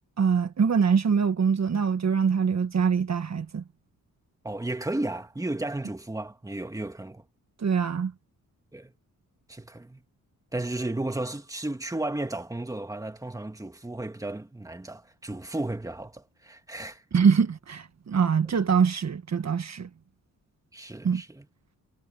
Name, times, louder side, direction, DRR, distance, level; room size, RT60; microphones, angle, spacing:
voice 1, 0.2-3.6 7.6-8.1 17.1-19.9 21.0-21.2, right 6 dB, 50° right, 1.5 m, -24 dB
voice 2, 4.4-7.2 8.7-8.9 9.5-10.0 10.5-17.0 20.7-21.5, right 2 dB, 10° right, 1.8 m, -34 dB
wide cardioid pair, 125°, 34 cm